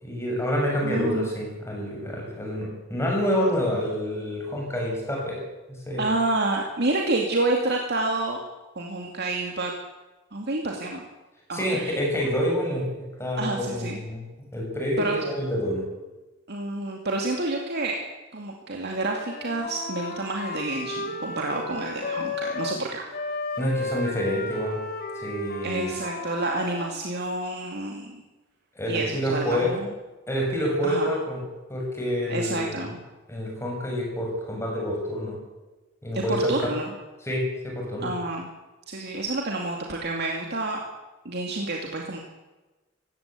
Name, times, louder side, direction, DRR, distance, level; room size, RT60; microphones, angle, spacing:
voice 1, 0.0-5.4 5.7-6.1 11.5-12.8 13.2-14.2 14.5-15.9 23.6-24.8 25.1-25.9 28.8-29.7 30.3-31.4 31.7-32.9 33.3-35.4 36.0-36.7 37.2-38.1, equal, 15° left, -1 dB, 7.3 m, -27 dB
voice 2, 0.8-1.3 6.0-8.4 8.8-9.7 10.3-11.0 11.5-12.0 13.3-14.0 15.0-15.2 16.5-18.0 18.3-23.1 25.6-28.2 28.9-29.9 30.8-31.1 32.3-33.0 36.1-36.9 38.0-38.5 38.9-40.8 41.2-42.2, right 2 dB, 55° right, 1 dB, 2.4 m, -29 dB
Wind instrument woodwind instrument, 19.1-22.8 23.1-27.0, left 3 dB, 50° left, 3.1 m, -34 dB
19.0 x 17.0 x 8.4 m, 1.1 s
head